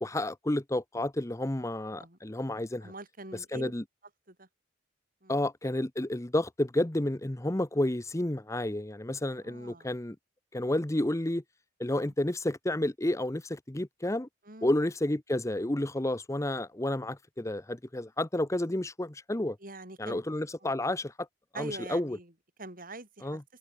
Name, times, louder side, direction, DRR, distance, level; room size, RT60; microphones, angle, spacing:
voice 1, 0.0-2.9 3.5-3.8 5.3-10.2 10.5-11.4 11.8-14.3 14.6-19.6 20.0-21.1 21.6-22.2 23.2-23.4, left 1 dB, 15° left, 0.8 m, -30 dB
voice 2, 2.8-3.7 4.3-4.5 5.2-5.4 9.4-9.9 14.4-14.7 19.6-20.2 20.6-20.7 21.5-22.3 22.6-23.4, right 2 dB, 45° right, 7.1 m, -44 dB
head